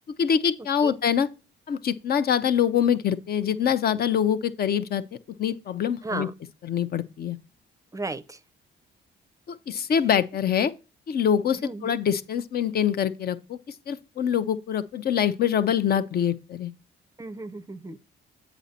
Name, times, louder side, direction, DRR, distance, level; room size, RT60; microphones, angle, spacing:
voice 1, 0.2-1.3 1.7-5.0 5.4-6.3 6.6-7.4 9.5-10.7 11.1-13.6 13.9-16.7, left 8 dB, 50° left, 0.6 m, -24 dB
voice 2, 6.0-6.3 7.9-8.4 11.5-12.0 17.2-18.0, right 2 dB, 15° right, 0.5 m, -34 dB
8.0 x 5.1 x 4.1 m
cardioid pair, 90°, 20 cm